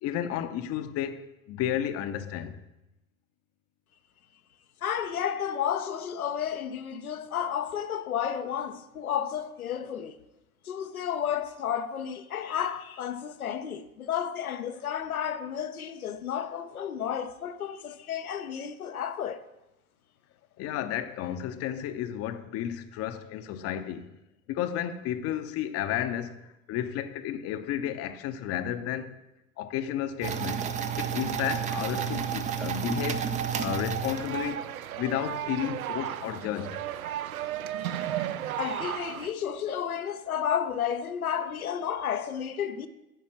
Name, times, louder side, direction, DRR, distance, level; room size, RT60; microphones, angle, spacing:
voice 1, 0.0-2.6 20.6-24.1 24.5-26.3 26.7-29.2 29.6-30.7 31.0-33.3 33.6-34.6 34.9-36.8, left 10 dB, 35° left, 0.7 m, -32 dB
voice 2, 4.8-10.2 10.6-19.5 37.8-38.3 38.6-42.9, left 8 dB, 80° left, 0.8 m, -32 dB
sound 1, 30.2-34.6, right 8 dB, 20° right, 0.5 m, -31 dB
sound 2, 34.1-39.3, right 11 dB, 75° right, 0.6 m, -34 dB
9.2 x 5.4 x 7.5 m
figure-of-eight pair, 80°, 43 cm